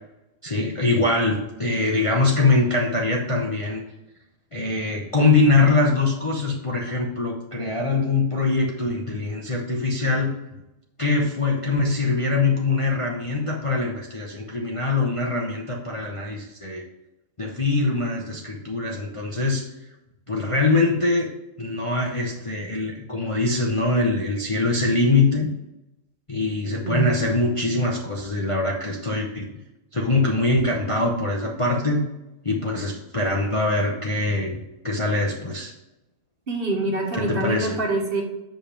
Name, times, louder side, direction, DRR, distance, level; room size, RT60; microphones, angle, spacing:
voice 1, 0.4-3.8 4.5-10.3 11.0-16.8 17.4-19.6 20.3-21.3 21.6-25.5 26.3-29.5 29.9-32.0 32.4-34.6 34.8-35.7 37.2-37.8, left 3 dB, 25° left, -2 dB, 0.8 m, -23 dB
voice 2, 36.5-38.2, right 2 dB, 40° right, 0 dB, 1.5 m, -25 dB
6.8 x 5.3 x 5.1 m, 0.94 s
omnidirectional pair, 1.5 m